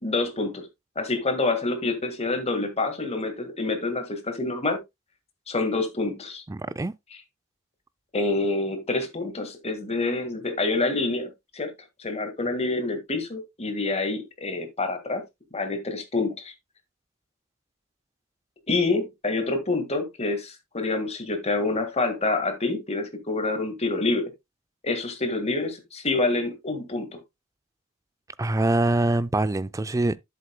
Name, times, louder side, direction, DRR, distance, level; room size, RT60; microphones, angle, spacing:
voice 1, 0.0-0.7 0.9-4.8 5.5-6.4 8.1-11.7 12.0-15.2 15.5-16.5 18.7-24.3 24.8-27.2, left 3 dB, 30° left, 1.7 m, -27 dB
voice 2, 6.5-6.9 28.4-30.2, right 2 dB, 15° right, 0.4 m, -24 dB
11.0 x 7.7 x 2.2 m
head